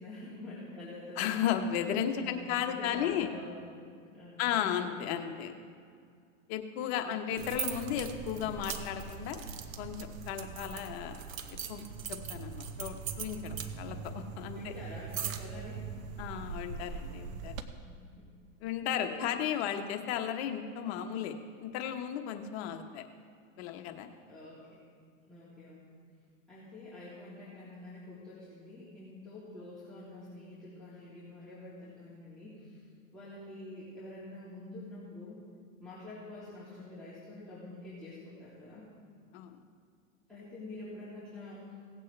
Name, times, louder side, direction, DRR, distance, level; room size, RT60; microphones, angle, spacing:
voice 1, 0.0-1.4 2.2-4.6 7.0-7.1 14.5-15.9 17.8-18.3 19.0-19.4 24.2-24.8 25.3-25.8 26.5-32.8 33.1-35.4 35.8-38.9 40.3-41.8, left 2 dB, ahead, -13 dB, 3.0 m, -47 dB
voice 2, 1.2-3.3 4.4-5.5 6.5-9.4 9.8-10.0 10.3-11.2 11.7-11.8 12.1-14.7 16.2-17.5 18.6-23.0 23.6-24.1 39.3-39.6, left 9 dB, 55° left, 5 dB, 1.2 m, -34 dB
sound 1, 7.4-17.6, right 7 dB, 90° right, 0.9 m, -40 dB
18.0 x 8.2 x 3.3 m, 2.2 s
supercardioid pair, 130°, 39 cm